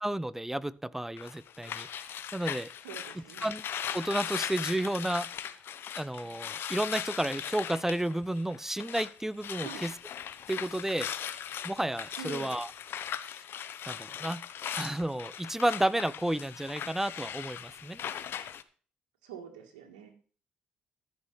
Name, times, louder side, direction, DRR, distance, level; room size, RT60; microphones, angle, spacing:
voice 1, 0.0-2.7 3.4-3.6 3.9-5.3 6.0-9.9 10.5-11.1 11.6-12.7 13.9-14.4 14.7-18.0, right 1 dB, 10° right, 19 dB, 0.8 m, -32 dB
sound 1, 1.2-9.1 9.4-18.6, left 9 dB, 65° left, 0.9 m, -39 dB
voice 2, 2.8-3.5 9.6-9.8 12.2-12.6 19.2-20.1, right 6 dB, 90° right, 1 dB, 1.8 m, -44 dB
14.0 x 6.5 x 5.9 m, 0.41 s
hypercardioid pair, 50°, 4 cm